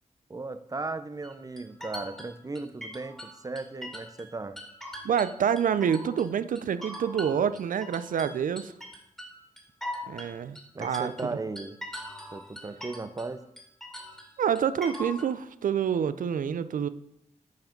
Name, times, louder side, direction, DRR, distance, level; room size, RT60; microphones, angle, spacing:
voice 1, 0.3-4.6 10.7-11.8 12.3-13.5, right 3 dB, 25° right, 11 dB, 0.6 m, -36 dB
sound 1, 1.2-4.3 4.6-6.3 6.6-13.3 13.6-15.3, equal, ahead, 2.1 m, -41 dB
voice 2, 5.0-8.7 10.1-11.1 14.4-16.9, right 8 dB, 80° right, 14 dB, 0.5 m, -27 dB
9.4 x 4.8 x 5.2 m, 0.77 s
cardioid pair, 75°, 14 cm